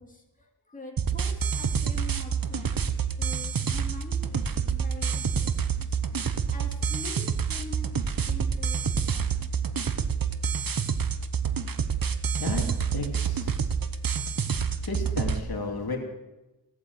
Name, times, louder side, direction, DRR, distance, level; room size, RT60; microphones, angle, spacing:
voice 1, 0.0-2.8 3.2-6.1 6.5-7.9 8.1-9.5 14.4-14.5, left 1 dB, 20° left, 0 dB, 2.6 m, -45 dB
sound 1, 1.0-15.4, right 6 dB, 50° right, 1.0 m, -28 dB
voice 2, 12.9-13.7 14.8-16.0, left 3 dB, 55° left, 1 dB, 3.0 m, -33 dB
17.0 x 8.3 x 8.0 m, 1.0 s
wide cardioid pair, 70°, 43 cm